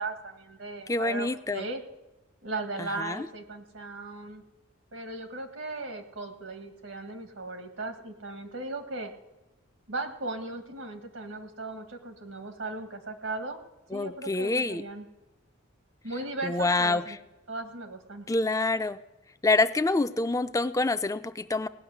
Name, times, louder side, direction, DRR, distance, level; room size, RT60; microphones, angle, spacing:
voice 1, 0.0-1.8 2.4-4.4 4.9-9.1 9.9-13.6 13.9-15.1 16.0-17.2 17.5-18.3, right 2 dB, 85° right, 5 dB, 1.9 m, -37 dB
voice 2, 0.9-1.7 2.8-3.3 13.9-14.8 16.4-17.2 18.3-19.0 19.4-21.7, left 3 dB, 15° left, 11 dB, 0.5 m, -26 dB
17.5 x 6.4 x 9.5 m, 1.0 s
head